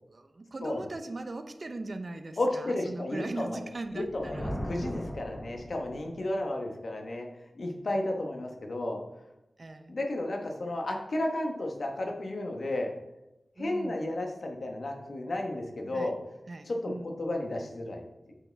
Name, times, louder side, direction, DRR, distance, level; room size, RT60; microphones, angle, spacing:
voice 1, 0.1-4.6 9.6-9.9 13.6-14.1 15.9-16.1 16.5-17.1, right 2 dB, 55° right, 8 dB, 0.6 m, -40 dB
voice 2, 2.4-3.6 3.9-7.3 7.5-9.0 9.9-12.9 13.6-16.1 16.7-18.4, left 1 dB, 70° left, 2 dB, 1.2 m, -33 dB
Thunder, 3.8-6.2, equal, 40° left, 2.3 m, -38 dB
8.7 x 5.0 x 3.4 m, 0.91 s
wide cardioid pair, 80°, 0 cm